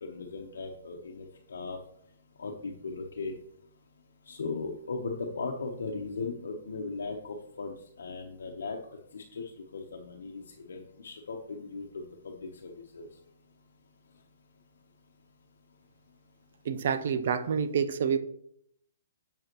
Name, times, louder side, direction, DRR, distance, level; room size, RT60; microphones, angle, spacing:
voice 1, 0.0-1.8 2.4-3.3 4.3-8.8 9.1-9.4 9.7-10.4 10.7-12.3 12.6-13.1, left 4 dB, 85° left, 1 dB, 1.0 m, -37 dB
voice 2, 16.6-18.2, right 7 dB, 55° right, 10 dB, 0.6 m, -28 dB
7.7 x 7.0 x 3.0 m, 0.69 s
hypercardioid pair, 165°, 0 cm